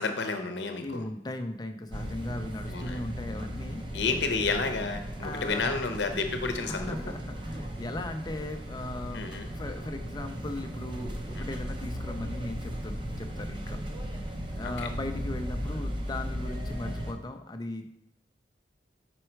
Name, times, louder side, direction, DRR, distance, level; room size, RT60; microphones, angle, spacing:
voice 1, 0.0-1.0 2.7-3.0 3.9-7.1 9.1-9.5 11.3-11.6 14.6-14.9, left 4 dB, 75° left, 6 dB, 0.7 m, -31 dB
voice 2, 0.8-3.8 5.2-5.7 6.7-13.8 14.1-14.2 14.5-17.9, left 1 dB, 20° left, 7 dB, 0.5 m, -38 dB
sound 1, 1.9-17.1, equal, 25° right, 0.6 m, -36 dB
5.5 x 4.5 x 4.4 m, 0.76 s
head